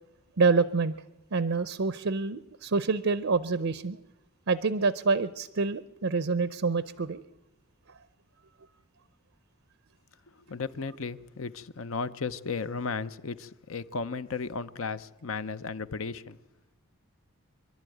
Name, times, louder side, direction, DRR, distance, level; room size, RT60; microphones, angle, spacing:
voice 1, 0.4-1.0 1.3-4.0 4.5-7.2, right 4 dB, 60° right, 0.6 m, -27 dB
voice 2, 10.5-16.4, left 4 dB, 65° left, 0.7 m, -35 dB
25.0 x 12.0 x 9.2 m
head